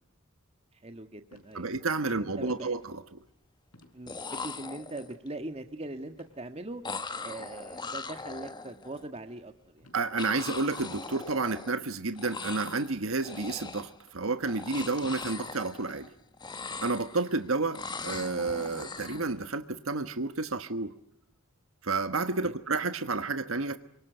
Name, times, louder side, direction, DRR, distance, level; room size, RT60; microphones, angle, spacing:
voice 1, 0.7-1.7 2.1-2.9 3.9-6.8 7.2-9.9 14.8-15.0 22.4-22.5, right 2 dB, 30° right, 7 dB, 1.6 m, -41 dB
sound 1, 1.3-1.5 2.4-2.7 3.7-4.4 4.7-5.2 6.1-6.3 7.3-7.6 8.4-8.5 9.8-10.1 10.4-10.5 11.0-12.6 13.2-13.4 14.0-15.4 15.7-16.1 16.6-16.9 17.6-17.8 18.2-18.7 19.1-19.6, left 1 dB, 85° left, 5.9 m, -56 dB
voice 2, 1.5-3.0 9.9-16.1 16.8-20.9 21.8-23.8, right 3 dB, 70° right, 10 dB, 1.4 m, -30 dB
sound 2, 1.6-1.8 2.2-2.8 3.8-3.9 4.1-5.3 6.8-9.0 10.2-11.9 12.2-12.9 13.2-14.0 14.4-16.1 16.3-17.4 17.7-19.3, left 4 dB, 20° left, 1.5 m, -40 dB
28.0 x 25.0 x 8.0 m, 0.72 s
head